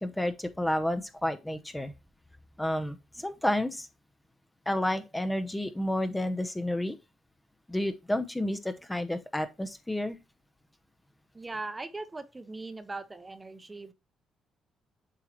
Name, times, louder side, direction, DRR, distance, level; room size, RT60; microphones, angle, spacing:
voice 1, 0.0-1.9 2.6-3.9 4.7-7.0 7.7-10.2, left 1 dB, 10° left, 0.7 m, -30 dB
voice 2, 11.3-13.9, right 3 dB, 20° right, 0.8 m, -40 dB
7.7 x 4.5 x 3.0 m
cardioid pair, 90°, 0 cm